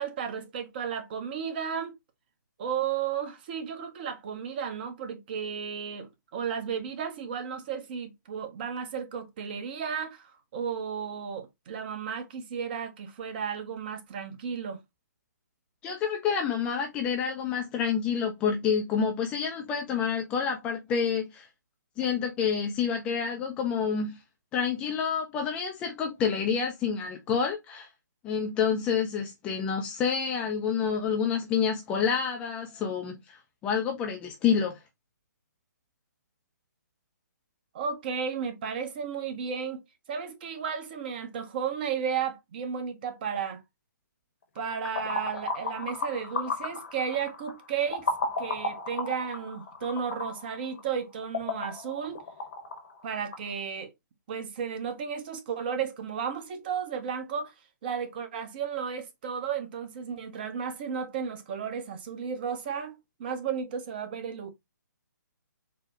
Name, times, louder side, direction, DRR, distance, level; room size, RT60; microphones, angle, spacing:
voice 1, 0.0-1.9 2.6-14.8 37.7-39.8 40.1-43.6 44.6-48.1 48.4-52.2 53.0-53.9 54.3-57.5 57.8-64.5, right 7 dB, 30° right, 0.6 m, -33 dB
voice 2, 15.8-21.5 22.0-24.1 24.5-27.9 28.2-34.8, left 6 dB, 10° left, 0.3 m, -28 dB
sound 1, 44.6-53.5, left 3 dB, 45° left, 0.8 m, -35 dB
3.9 x 2.0 x 2.9 m
figure-of-eight pair, 135°, 10 cm